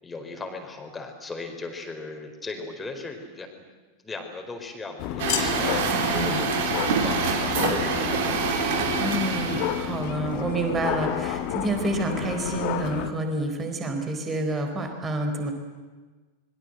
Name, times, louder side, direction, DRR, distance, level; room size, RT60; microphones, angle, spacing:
voice 1, 0.0-3.6 4.0-8.5, left 3 dB, 15° left, 4 dB, 4.4 m, -37 dB
sound 1, 5.0-13.1, left 11 dB, 45° left, 1.7 m, -30 dB
Truck, 5.2-10.0, right 6 dB, 50° right, 3.5 m, -26 dB
voice 2, 5.8-6.4 9.0-15.5, right 2 dB, 20° right, 5 dB, 4.4 m, -29 dB
sound 2, 5.8-12.7, equal, 85° right, 6.7 m, -43 dB
25.5 x 22.0 x 7.9 m, 1.4 s
figure-of-eight pair, 90°, 0 cm